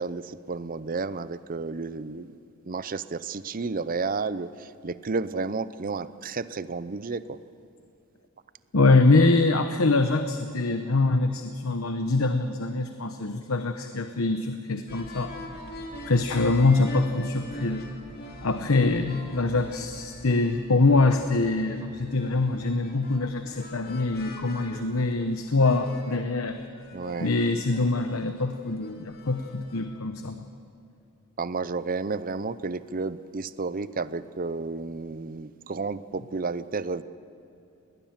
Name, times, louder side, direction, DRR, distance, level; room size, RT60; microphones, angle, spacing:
voice 1, 0.0-2.3 2.7-7.4 26.9-27.3 31.4-37.0, right 4 dB, 40° right, 15 dB, 0.6 m, -32 dB
voice 2, 8.7-15.3 16.1-17.9 18.4-26.6 27.2-30.4, left 3 dB, 70° left, 7 dB, 1.0 m, -24 dB
sound 1, 14.9-30.0, equal, 45° left, 2.7 m, -44 dB
21.0 x 19.0 x 7.4 m, 2.7 s
head